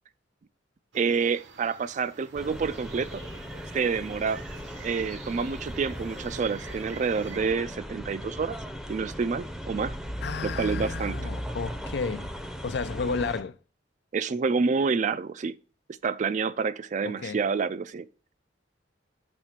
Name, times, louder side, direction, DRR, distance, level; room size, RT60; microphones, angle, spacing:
voice 1, 0.9-3.2 3.7-4.4 4.8-8.6 8.9-9.9 10.4-11.2 14.1-15.6 16.0-18.1, right 5 dB, 40° right, 0.3 m, -28 dB
sound 1, 0.9-7.4, right 5 dB, 70° right, 0.9 m, -47 dB
sound 2, 2.3-13.4, equal, ahead, 0.6 m, -37 dB
voice 2, 10.2-12.3 12.6-13.6 17.0-17.4, left 4 dB, 65° left, 0.4 m, -32 dB
6.1 x 3.3 x 5.8 m
head